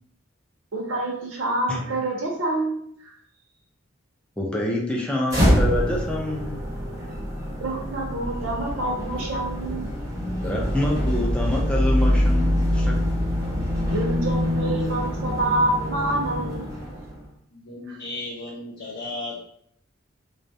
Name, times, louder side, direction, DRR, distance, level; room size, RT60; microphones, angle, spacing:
voice 1, 0.7-3.1 5.1-5.2 7.6-9.9 13.9-16.7 17.9-18.0, right 2 dB, 70° right, -1 dB, 0.7 m, -27 dB
voice 2, 4.4-6.6 10.4-13.0, left 1 dB, 5° left, -2 dB, 0.4 m, -26 dB
sound 1, 5.3-17.3, equal, 15° right, 0.8 m, -25 dB
voice 3, 17.5-19.4, left 2 dB, 70° left, -7 dB, 0.5 m, -35 dB
2.3 x 2.0 x 2.6 m, 0.67 s
head